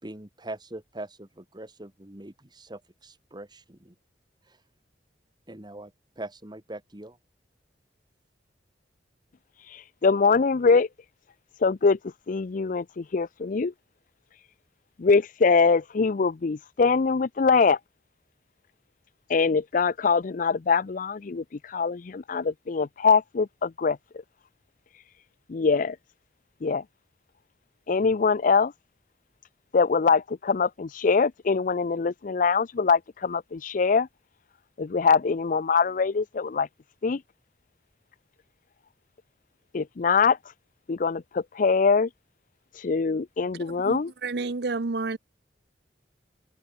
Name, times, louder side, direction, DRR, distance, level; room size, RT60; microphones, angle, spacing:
voice 1, 0.0-3.9 4.4-4.6 5.5-7.2, right 1 dB, 25° right, 2.2 m, -42 dB
voice 2, 10.0-10.9 11.6-12.0 12.3-13.7 15.0-17.8 19.3-24.0 25.5-26.0 26.6-26.8 27.9-28.7 29.7-34.1 34.8-36.7 37.0-37.2 39.7-40.4 40.9-42.1 42.8-44.1, left 5 dB, 50° left, 0.5 m, -23 dB
voice 3, 43.8-45.2, right 3 dB, 65° right, 0.8 m, -30 dB
head